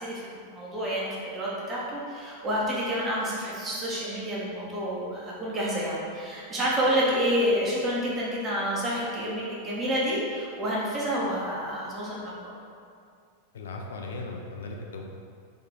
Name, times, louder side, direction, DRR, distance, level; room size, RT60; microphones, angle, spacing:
voice 1, 0.0-12.5, equal, 20° right, -6 dB, 1.2 m, -29 dB
voice 2, 13.5-15.0, left 3 dB, 65° left, 1 dB, 0.4 m, -37 dB
3.8 x 3.3 x 3.7 m, 2.3 s
figure-of-eight pair, 90°, 0 cm